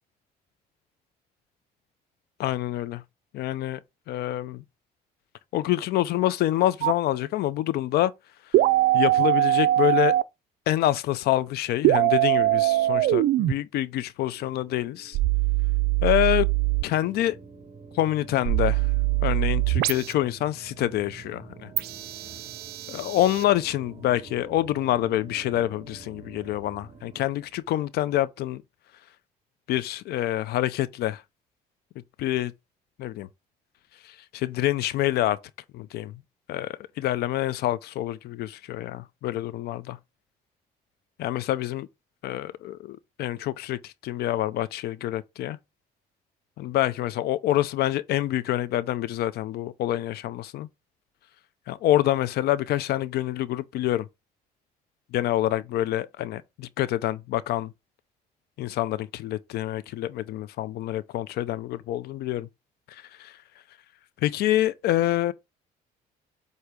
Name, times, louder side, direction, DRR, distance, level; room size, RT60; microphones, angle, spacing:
voice 1, 2.4-3.0 3.3-3.8 4.1-4.6 5.5-8.1 8.9-10.1 10.7-15.2 16.0-16.5 16.8-17.4 17.9-18.9 19.2-21.7 22.9-28.6 29.7-31.2 32.2-32.5 33.0-33.3 34.0-35.4 35.7-36.1 36.5-40.0 41.2-41.9 42.2-45.6 46.6-50.7 51.7-54.1 55.1-57.7 58.6-62.5 62.9-63.3 64.2-65.3, left 14 dB, 70° left, 0.5 m, -26 dB
sound 1, 6.8-6.9 8.5-10.2 11.8-13.5 15.1-16.8 18.4-20.1 21.8-23.4, right 16 dB, 70° right, 0.4 m, -22 dB
sound 2, 14.2-27.8, right 4 dB, 35° right, 1.4 m, -47 dB
8.0 x 2.8 x 5.0 m
cardioid pair, 110°, 17 cm